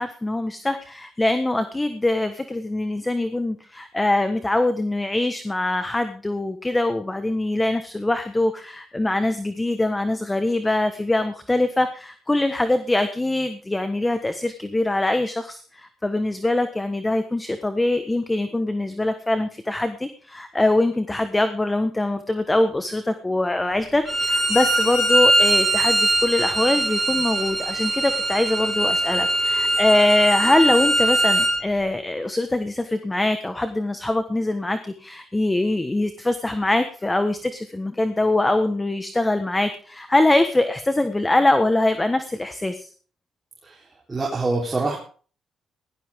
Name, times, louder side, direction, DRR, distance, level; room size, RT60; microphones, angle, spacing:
voice 1, 0.0-42.9, left 2 dB, 15° left, 9 dB, 1.3 m, -23 dB
Bowed string instrument, 24.1-31.5, right 1 dB, 5° right, 7.4 m, -21 dB
voice 2, 43.6-45.0, right 3 dB, 25° right, -2 dB, 3.7 m, -26 dB
17.5 x 13.0 x 3.7 m, 0.41 s
cardioid pair, 90°, 0 cm